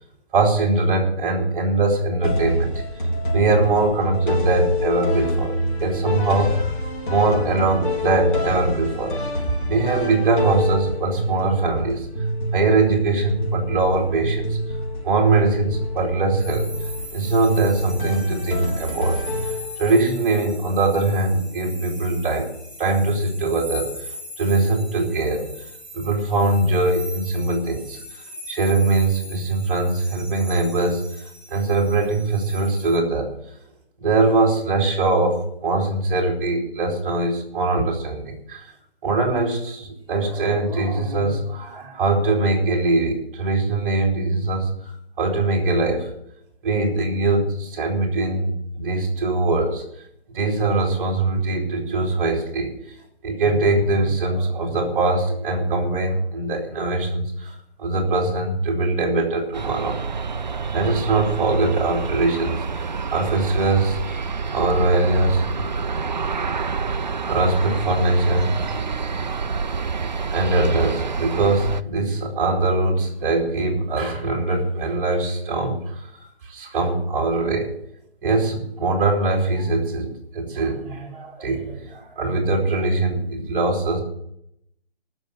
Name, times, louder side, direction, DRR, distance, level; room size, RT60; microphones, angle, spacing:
voice 1, 0.3-2.8 3.3-6.7 7.1-9.2 9.7-12.1 12.5-14.6 15.0-16.7 17.1-19.2 19.8-22.5 22.8-25.5 25.9-33.3 34.0-38.7 39.0-46.1 46.6-49.8 50.3-52.7 53.2-60.0 60.7-64.2 64.5-65.5 66.9-69.4 70.3-77.7 78.2-84.0, right 3 dB, 15° right, -1 dB, 2.5 m, -22 dB
sound 1, 2.2-20.0, equal, 50° left, 3.8 m, -26 dB
sound 2, 16.4-32.9, left 1 dB, 15° left, 2.0 m, -40 dB
Aircraft, 59.5-71.8, right 5 dB, 45° right, 0.5 m, -27 dB
14.5 x 6.5 x 8.1 m, 0.75 s
hypercardioid pair, 170°, 32 cm